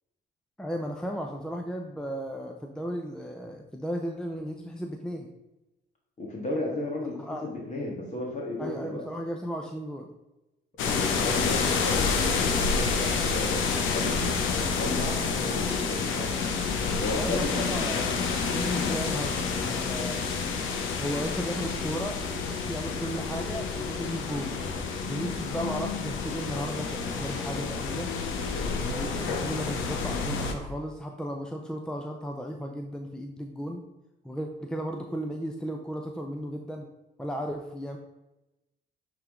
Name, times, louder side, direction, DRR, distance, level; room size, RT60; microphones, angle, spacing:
voice 1, 0.6-5.3 7.2-7.5 8.6-10.1 17.1-20.2 21.0-22.2 22.7-24.6 25.0-28.1 28.8-33.8 34.2-36.9 37.2-38.0, equal, 5° left, 2 dB, 0.6 m, -35 dB
voice 2, 6.2-9.0 10.8-16.3 17.0-18.2 28.6-28.8, left 2 dB, 35° left, -2 dB, 1.7 m, -34 dB
sound 1, 10.8-30.5, left 5 dB, 90° left, 0.9 m, -29 dB
8.7 x 3.8 x 3.7 m, 0.98 s
cardioid pair, 90°, 20 cm